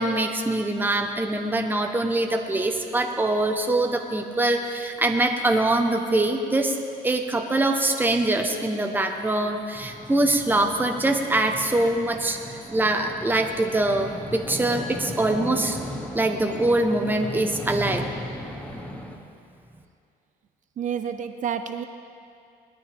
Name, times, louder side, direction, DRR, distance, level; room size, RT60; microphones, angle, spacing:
voice 1, 0.0-6.8 7.0-15.8 16.1-18.1 18.4-18.5, right 2 dB, 10° right, 4 dB, 1.1 m, -23 dB
sound 1, 9.7-19.2, left 1 dB, 10° left, 1.4 m, -37 dB
voice 2, 20.8-21.8, right 8 dB, 50° right, 9 dB, 0.6 m, -29 dB
20.0 x 12.5 x 3.5 m, 2.4 s
cardioid pair, 110°, 17 cm